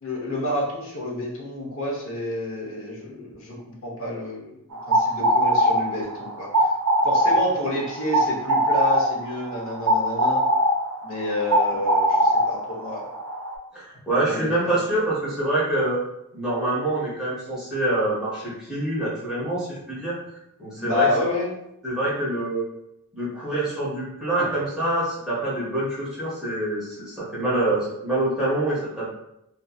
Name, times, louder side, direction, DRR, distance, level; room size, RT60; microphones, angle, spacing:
voice 1, 0.0-3.6 3.8-4.6 4.9-6.5 7.0-10.4 11.0-13.1 14.3-14.8 20.8-21.5, left 1 dB, 60° left, -3 dB, 0.8 m, -29 dB
sound 1, 4.7-13.6, equal, 90° right, 0.5 m, -22 dB
voice 2, 13.7-16.0 16.3-20.2 20.6-21.1 21.8-22.6 23.1-29.1, right 1 dB, 5° right, -10 dB, 0.8 m, -25 dB
2.7 x 2.6 x 2.3 m, 0.81 s
head